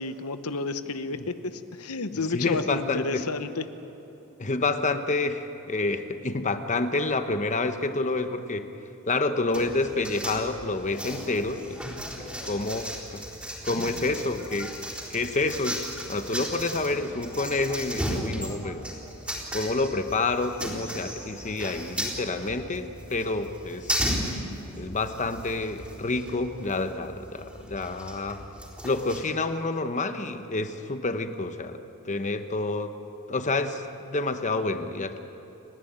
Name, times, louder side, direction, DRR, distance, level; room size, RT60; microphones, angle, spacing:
voice 1, 0.0-3.6, left 3 dB, 80° left, 11 dB, 1.0 m, -31 dB
voice 2, 2.3-3.2 4.4-8.7 9.1-11.8 12.2-13.2 13.6-14.8 15.1-15.8 16.1-18.8 19.5-24.0 24.8-28.4 28.8-31.8 32.0-32.9 33.3-35.2, left 3 dB, 35° left, 9 dB, 1.0 m, -28 dB
sound 1, 9.5-29.2, equal, 5° right, 3.9 m, -36 dB
30.0 x 11.5 x 9.0 m, 3.0 s
head